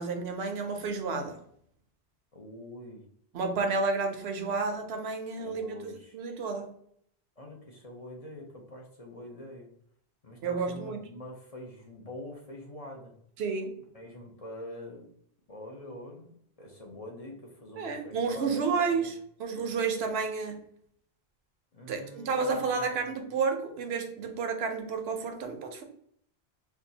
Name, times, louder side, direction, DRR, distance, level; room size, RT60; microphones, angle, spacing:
voice 1, 0.0-1.4 3.3-6.7 10.4-11.1 13.4-13.8 17.8-20.6 21.9-25.8, right 4 dB, 85° right, 5 dB, 0.9 m, -31 dB
voice 2, 2.3-3.0 4.3-4.5 5.4-6.2 7.4-9.7 10.2-13.1 13.9-15.1 15.5-18.7 18.9-19.1 21.7-22.9, left 1 dB, 40° left, 0 dB, 0.7 m, -45 dB
4.5 x 2.3 x 2.7 m, 0.64 s
omnidirectional pair, 1.0 m